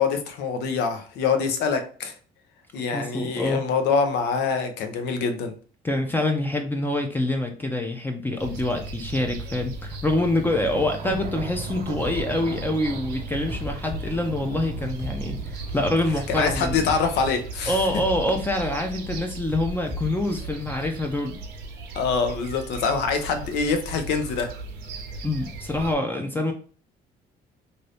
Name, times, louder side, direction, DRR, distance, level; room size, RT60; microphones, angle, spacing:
voice 1, 0.0-2.1 2.7-5.5 16.3-17.8 21.9-24.5, left 5 dB, 80° left, 7 dB, 0.7 m, -25 dB
voice 2, 2.9-3.6 5.8-16.9 17.7-21.4 25.2-26.5, left 1 dB, 10° left, 3 dB, 0.5 m, -26 dB
sound 1, 8.4-26.0, right 3 dB, 80° right, 0.7 m, -36 dB
sound 2, 10.5-16.2, right 6 dB, 45° right, 0.5 m, -39 dB
sound 3, 12.0-12.2 12.7-12.9 13.5-15.2 15.7-15.9 16.5-18.2 18.7-18.9 19.5-21.0, left 4 dB, 45° left, 1.2 m, -37 dB
2.7 x 2.6 x 3.3 m, 0.41 s
cardioid pair, 110°, 17 cm